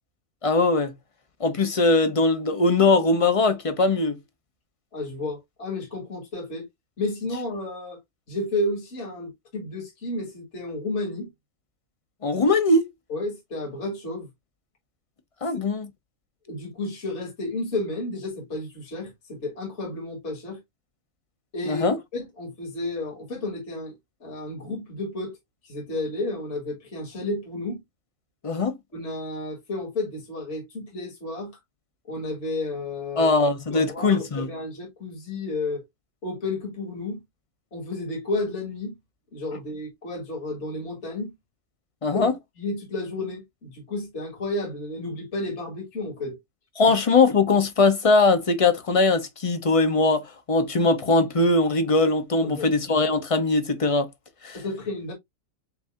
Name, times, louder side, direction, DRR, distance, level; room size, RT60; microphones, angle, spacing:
voice 1, 0.4-0.9 1.4-4.2 12.2-12.9 15.4-15.9 21.6-22.0 28.4-28.7 33.2-34.5 42.0-42.3 46.8-54.1 54.4-54.6, left 3 dB, 30° left, 0.8 m, -21 dB
voice 2, 4.9-6.7 7.0-8.0 8.3-11.3 13.1-14.3 16.5-20.6 21.5-21.8 22.1-23.9 24.2-25.4 25.6-27.8 28.9-31.5 32.1-33.3 33.7-35.8 36.2-37.2 37.7-38.9 39.3-41.3 42.1-42.3 42.6-46.4 46.9-47.0 52.4-52.7 54.5-55.1, left 2 dB, 55° left, 2.0 m, -32 dB
8.0 x 2.7 x 2.4 m
omnidirectional pair, 1.4 m